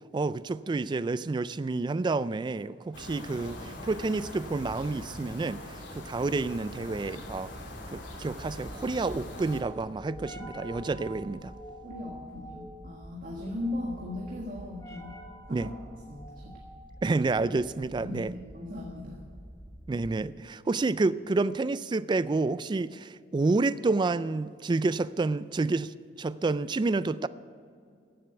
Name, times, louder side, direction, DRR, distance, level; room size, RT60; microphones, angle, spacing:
voice 1, 0.1-7.5 7.9-11.5 15.5-15.7 17.0-18.3 19.9-27.3, right 3 dB, 25° right, 0.3 m, -29 dB
sound 1, 2.9-9.6, left 1 dB, 80° left, 2.7 m, -42 dB
sound 2, 7.1-20.3, equal, 20° left, 1.9 m, -47 dB
voice 2, 11.8-15.1 15.5-15.7 16.1-16.6 17.9-19.2, left 2 dB, 50° right, 1.6 m, -38 dB
14.5 x 7.8 x 8.0 m
head